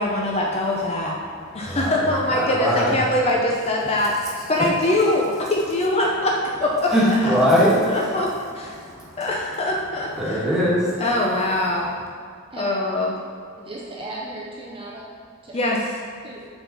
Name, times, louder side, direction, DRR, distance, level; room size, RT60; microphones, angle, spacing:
voice 1, 0.0-1.2 1.5-7.3 7.9-8.8 9.2-10.4 11.0-11.9 12.6-13.1 15.5-15.8, left 1 dB, 30° left, -2 dB, 0.5 m, -23 dB
voice 2, 1.3-2.9 6.9-8.2 8.7-9.2 10.2-11.1, equal, ahead, -8 dB, 1.4 m, -21 dB
voice 3, 13.6-15.1 15.4-15.6 16.2-16.4, right 2 dB, 25° right, -3 dB, 0.6 m, -36 dB
6.9 x 3.9 x 4.0 m, 2.1 s
head